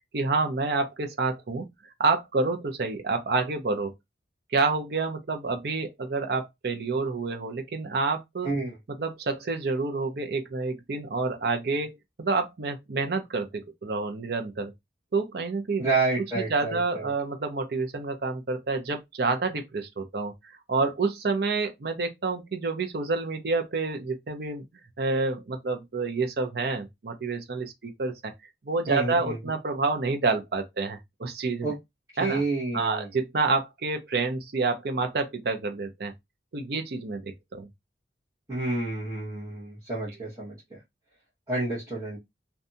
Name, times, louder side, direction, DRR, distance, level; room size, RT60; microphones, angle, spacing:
voice 1, 0.1-1.7 2.0-3.9 4.5-8.5 9.0-14.7 15.1-15.9 16.5-20.3 20.7-24.6 25.0-28.3 28.7-31.7 32.2-32.4 32.7-36.1 36.5-37.7, right 3 dB, 60° right, 0.5 m, -28 dB
voice 2, 8.4-8.8 15.8-17.1 28.9-29.4 31.6-31.8 32.2-33.1 38.5-40.8 41.5-42.2, right 3 dB, 20° right, 1.0 m, -29 dB
2.6 x 2.3 x 2.6 m
head